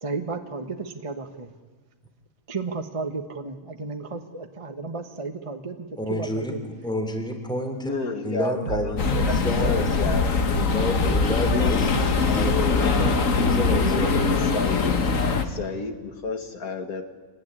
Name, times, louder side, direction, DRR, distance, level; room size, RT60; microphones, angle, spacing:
voice 1, 0.0-1.5 2.5-6.6, right 4 dB, 25° right, 5 dB, 1.2 m, -33 dB
voice 2, 6.0-6.5 6.8-7.9 8.2-11.9 12.3-14.5, left 1 dB, 5° left, 4 dB, 3.2 m, -30 dB
voice 3, 7.8-10.5 11.0-11.8 12.2-12.9 13.3-15.0 15.4-17.0, left 4 dB, 85° left, 6 dB, 2.4 m, -31 dB
sound 1, 8.7-13.6, right 4 dB, 75° right, 1.7 m, -32 dB
sound 2, 9.0-15.4, left 4 dB, 65° left, 1.9 m, -22 dB
26.5 x 19.0 x 10.0 m, 1.4 s
omnidirectional pair, 1.5 m